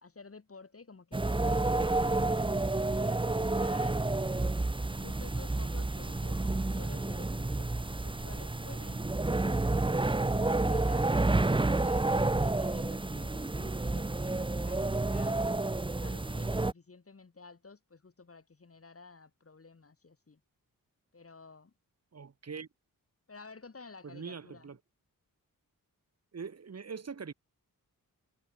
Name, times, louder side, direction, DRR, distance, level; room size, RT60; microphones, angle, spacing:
voice 1, 0.0-2.5 2.9-4.0 4.9-11.1 11.5-15.4 16.0-20.4 21.1-21.7 23.3-24.7, left 4 dB, 40° left, 3.1 m, -52 dB
sound 1, 1.1-16.7, right 2 dB, 15° right, 0.9 m, -30 dB
voice 2, 22.1-22.7 24.0-24.8 26.3-27.3, right 5 dB, 45° right, 1.5 m, -42 dB
wide cardioid pair, 125°, 34 cm